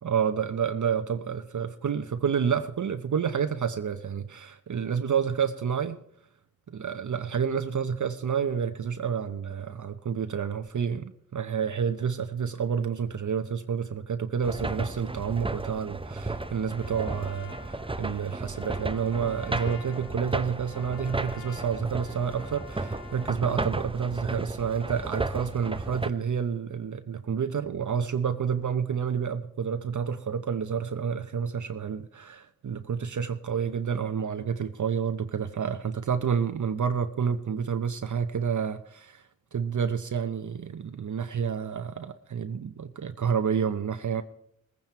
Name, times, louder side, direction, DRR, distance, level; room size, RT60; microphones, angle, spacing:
voice 1, 0.0-6.0 6.7-44.2, right 7 dB, 55° right, 0.8 m, -29 dB
sound 1, 14.4-26.1, right 2 dB, 15° right, 0.7 m, -34 dB
Trumpet, 16.3-23.5, left 6 dB, 70° left, 1.0 m, -49 dB
19.5 x 9.3 x 4.5 m
cardioid pair, 50°, 36 cm